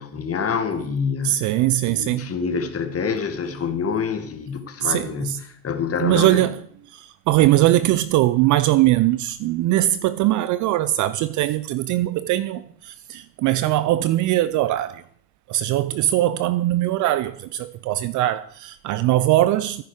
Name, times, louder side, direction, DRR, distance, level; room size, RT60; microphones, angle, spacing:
voice 1, 0.0-1.5 1.8-6.4, left 5 dB, 30° left, 1.9 m, -27 dB
voice 2, 1.2-2.3 4.8-5.4 6.0-6.6 6.9-15.0 15.5-19.8, right 15 dB, 40° right, 0.5 m, -21 dB
14.0 x 10.5 x 4.9 m
hypercardioid pair, 75°, 49 cm